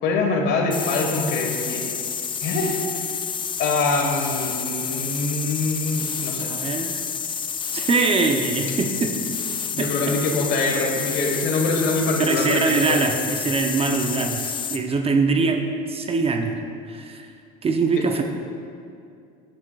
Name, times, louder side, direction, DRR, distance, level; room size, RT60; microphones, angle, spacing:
voice 1, 0.0-1.8 2.4-3.0 3.6-6.5 9.7-13.1 18.0-18.1, left 3 dB, 55° left, 2 dB, 1.4 m, -24 dB
sound 1, 0.7-14.9, left 6 dB, 25° left, 0.4 m, -29 dB
voice 2, 6.4-6.9 7.7-9.4 9.8-10.2 12.2-15.6 15.9-16.6 16.9-17.3 17.6-18.2, right 4 dB, 30° right, 4 dB, 0.6 m, -23 dB
9.7 x 8.7 x 2.3 m, 2.5 s
supercardioid pair, 95°, 21 cm